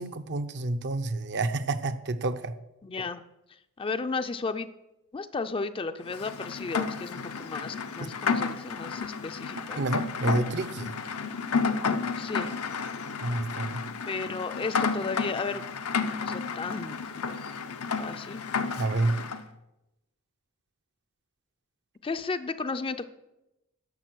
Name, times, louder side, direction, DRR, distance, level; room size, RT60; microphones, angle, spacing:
voice 1, 0.0-2.5 8.0-8.1 9.8-10.9 13.2-13.8 18.8-19.2, right 2 dB, 55° right, 10 dB, 0.6 m, -29 dB
voice 2, 2.8-3.2 3.8-4.7 5.1-9.8 12.2-12.5 14.1-15.6 15.9-17.3 18.0-18.4 22.0-23.1, left 4 dB, 25° left, 10 dB, 0.4 m, -34 dB
Rain, 6.1-19.4, left 5 dB, 85° left, 0.7 m, -32 dB
11.0 x 6.6 x 6.2 m, 0.93 s
head